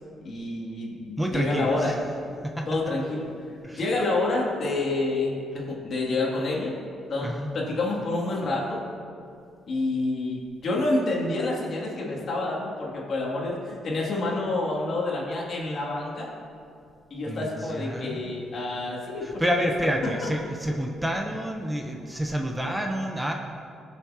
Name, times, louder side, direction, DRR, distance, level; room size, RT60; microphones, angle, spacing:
voice 1, 0.2-1.9 2.7-3.3 3.7-6.7 7.1-8.8 9.7-16.3 17.1-19.7 20.0-20.1, left 2 dB, 55° left, -3 dB, 2.6 m, -28 dB
voice 2, 1.2-2.0 2.4-2.8 3.6-3.8 7.2-7.5 17.2-18.3 19.2-23.3, equal, 10° right, 2 dB, 0.8 m, -29 dB
17.5 x 7.3 x 2.9 m, 2.4 s
cardioid pair, 90°, 0 cm